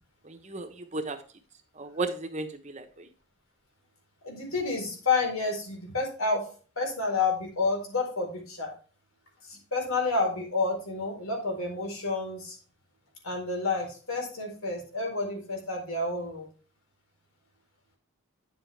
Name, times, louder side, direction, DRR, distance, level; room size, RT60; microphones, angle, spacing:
voice 1, 0.2-1.2 1.8-2.8, right 3 dB, 30° right, 8 dB, 1.0 m, -34 dB
voice 2, 4.2-6.5 6.8-8.7 9.5-12.6 13.2-16.5, left 3 dB, 80° left, 1 dB, 4.2 m, -29 dB
9.9 x 7.4 x 3.4 m, 0.37 s
head